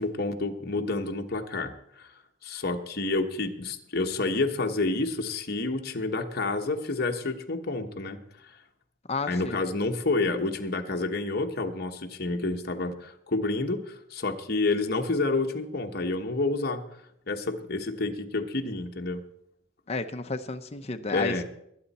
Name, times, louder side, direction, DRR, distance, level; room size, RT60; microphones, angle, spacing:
voice 1, 0.0-2.1 2.4-8.6 9.3-16.9 17.3-19.2 21.1-21.4, left 3 dB, 50° left, 4 dB, 1.2 m, -29 dB
voice 2, 9.1-9.6 19.9-21.4, left 3 dB, 30° left, 7 dB, 0.8 m, -32 dB
20.5 x 9.1 x 4.2 m, 0.75 s
head